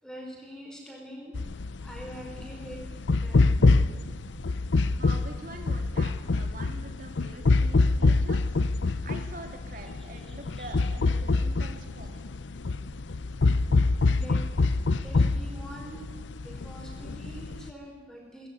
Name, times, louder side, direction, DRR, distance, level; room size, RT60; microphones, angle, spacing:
voice 1, 0.0-1.4 1.8-2.9 3.1-3.4 10.5-10.7 14.1-14.4 14.9-16.2 16.4-18.5, equal, 5° left, -1 dB, 4.9 m, -44 dB
sound 1, 1.3-17.7, left 3 dB, 75° left, 0.6 m, -26 dB
voice 2, 5.0-8.4 9.0-12.2, right 2 dB, 45° right, 4 dB, 2.9 m, -44 dB
20.5 x 14.5 x 9.6 m, 1.4 s
head